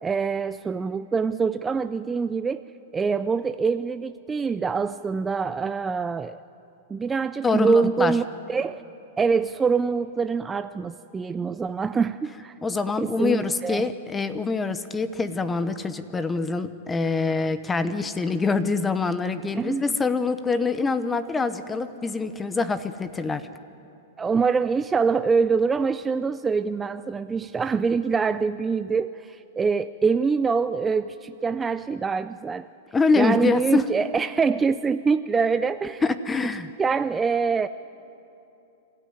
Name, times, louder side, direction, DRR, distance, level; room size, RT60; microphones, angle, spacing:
voice 1, 0.0-2.6 2.9-6.4 6.9-8.2 8.5-8.8 9.2-12.6 13.0-13.9 19.5-20.0 24.2-32.7 33.2-36.0 36.8-37.7, right 5 dB, 15° right, 11 dB, 0.4 m, -24 dB
voice 2, 7.4-8.2 12.6-23.5 32.9-33.8 36.0-36.7, left 4 dB, 15° left, 13 dB, 0.8 m, -25 dB
26.0 x 13.5 x 9.5 m, 2.9 s
hypercardioid pair, 125°, 0 cm